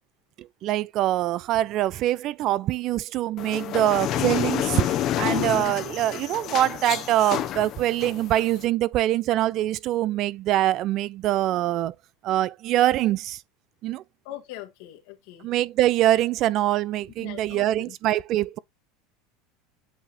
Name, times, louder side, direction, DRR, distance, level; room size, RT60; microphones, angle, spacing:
voice 1, 0.4-11.9 12.2-13.4 13.8-14.0 15.4-18.6, right 14 dB, 50° right, 0.4 m, -24 dB
sound 1, 3.4-8.6, left 11 dB, 50° left, 0.9 m, -29 dB
voice 2, 14.2-15.5 17.2-17.9, left 13 dB, 70° left, 1.5 m, -41 dB
8.2 x 2.8 x 4.1 m
supercardioid pair, 105°, 0 cm